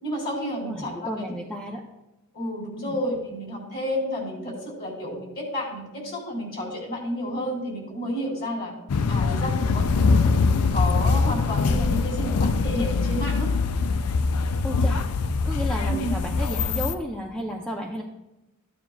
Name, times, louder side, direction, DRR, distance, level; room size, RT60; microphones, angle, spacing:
voice 1, 0.0-1.3 2.3-8.7 9.1-13.5 15.9-16.1, equal, 45° left, -1 dB, 3.1 m, -31 dB
voice 2, 0.6-1.8 2.8-2.9 14.6-15.0 15.4-18.0, equal, 5° left, 0 dB, 0.7 m, -32 dB
sound 1, 8.9-16.9, left 4 dB, 90° left, 0.5 m, -23 dB
14.0 x 9.5 x 2.4 m, 0.97 s
head